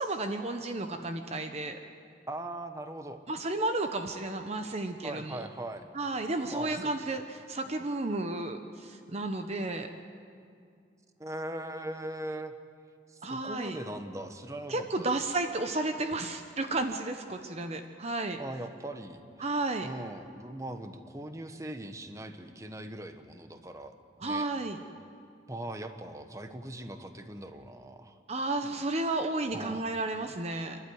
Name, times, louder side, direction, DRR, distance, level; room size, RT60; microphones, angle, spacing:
voice 1, 0.0-1.8 3.3-5.4 5.9-9.9 13.2-13.8 14.7-18.4 19.4-19.9 24.2-24.8 28.3-30.8, right 2 dB, 40° right, 6 dB, 1.0 m, -32 dB
voice 2, 2.3-3.2 5.0-5.8 6.5-6.9 11.2-12.5 13.1-15.4 18.4-19.6 19.8-23.9 24.2-24.5 25.5-28.2 29.5-29.9, right 1 dB, 20° right, 7 dB, 1.1 m, -40 dB
29.5 x 12.0 x 9.4 m, 2.3 s
head